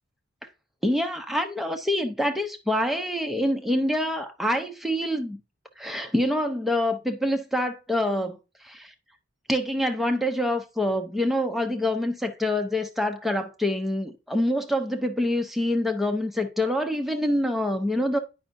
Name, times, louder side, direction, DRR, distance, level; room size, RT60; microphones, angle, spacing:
voice 1, 0.8-5.4 5.8-8.4 8.6-8.9 9.5-18.2, left 1 dB, ahead, 0.5 m, -26 dB
8.9 x 5.3 x 2.5 m
head